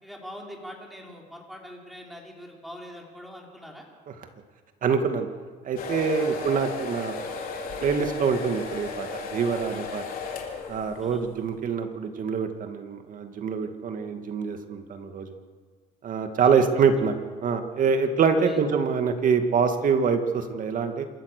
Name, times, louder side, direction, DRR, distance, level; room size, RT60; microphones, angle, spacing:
voice 1, 0.0-3.8 6.2-6.4 11.0-11.2 16.4-16.9 18.4-18.6, equal, ahead, -1 dB, 4.9 m, -43 dB
voice 2, 4.8-5.3 5.6-7.5 7.8-10.0 10.7-15.4 16.0-17.1 17.4-21.0, right 6 dB, 50° right, 6 dB, 2.3 m, -25 dB
sound 1, 5.8-11.3, left 5 dB, 60° left, 3.7 m, -35 dB
27.0 x 14.0 x 6.8 m, 1.5 s
cardioid pair, 110°, 17 cm